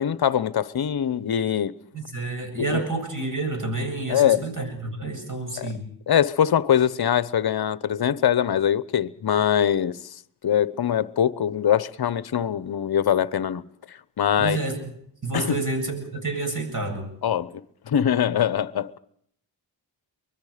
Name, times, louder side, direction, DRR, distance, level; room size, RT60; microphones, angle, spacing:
voice 1, 0.0-1.7 2.6-2.8 4.1-4.5 5.6-5.7 6.1-10.0 10.4-13.6 14.2-14.6 15.3-15.6 17.2-19.0, left 9 dB, 50° left, 1.0 m, -23 dB
voice 2, 1.9-5.8 14.4-14.8 15.2-17.1, right 3 dB, 40° right, 8.0 m, -29 dB
24.5 x 21.5 x 5.1 m
cardioid pair, 55°, 48 cm